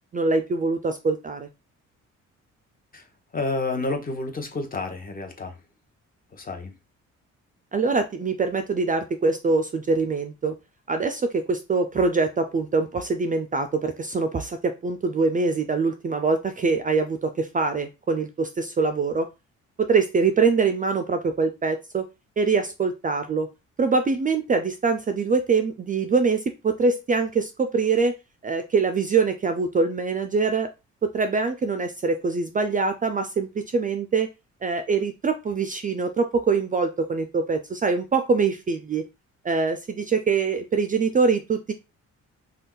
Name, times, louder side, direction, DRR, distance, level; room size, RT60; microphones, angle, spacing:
voice 1, 0.1-1.5 7.7-10.6 10.9-19.3 19.8-22.1 22.4-23.5 23.8-28.2 28.4-30.7 31.0-34.3 34.6-39.0 39.4-41.7, right 4 dB, 25° right, 7 dB, 0.4 m, -24 dB
voice 2, 2.9-5.6 6.3-6.7, left 3 dB, 30° left, 5 dB, 0.9 m, -30 dB
2.6 x 2.3 x 3.7 m, 0.26 s
cardioid pair, 90°, 30 cm